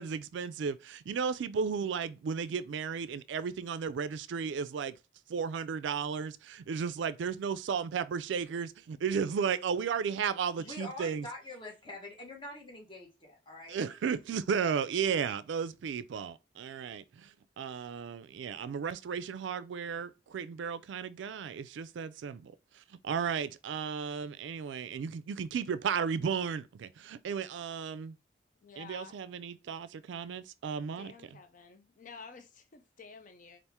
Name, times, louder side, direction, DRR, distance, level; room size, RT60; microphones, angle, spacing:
voice 1, 0.0-5.0 5.3-11.3 13.7-28.2 28.8-31.1, right 6 dB, 75° right, 0.3 m, -34 dB
voice 2, 10.6-13.8, left 2 dB, 25° left, 1.2 m, -45 dB
voice 3, 28.6-29.2 31.0-33.6, left 5 dB, 45° left, 0.5 m, -51 dB
4.2 x 2.5 x 3.4 m
head